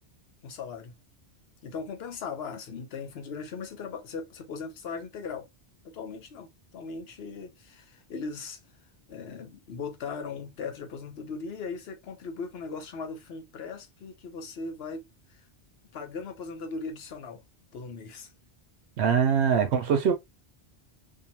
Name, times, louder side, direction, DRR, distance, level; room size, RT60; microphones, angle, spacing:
voice 1, 0.4-0.9 1.6-5.5 5.8-8.6 9.1-15.1 15.3-15.4 15.9-17.4 17.7-18.3, left 4 dB, 70° left, 0.9 m, -38 dB
voice 2, 19.0-20.1, right 7 dB, 80° right, 0.9 m, -23 dB
2.7 x 2.4 x 2.7 m
omnidirectional pair, 1.1 m